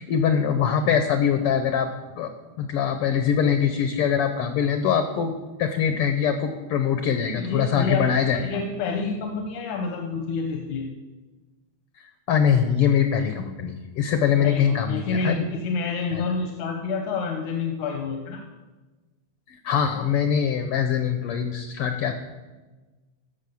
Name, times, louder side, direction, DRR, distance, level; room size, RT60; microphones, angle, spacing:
voice 1, 0.0-1.9 2.2-2.3 2.6-8.4 12.3-15.4 16.1-16.2 19.5-22.1, left 8 dB, 70° left, 7 dB, 1.4 m, -23 dB
voice 2, 7.4-10.9 14.4-18.4, left 4 dB, 85° left, 3 dB, 2.4 m, -28 dB
14.5 x 5.6 x 7.0 m, 1.2 s
omnidirectional pair, 3.3 m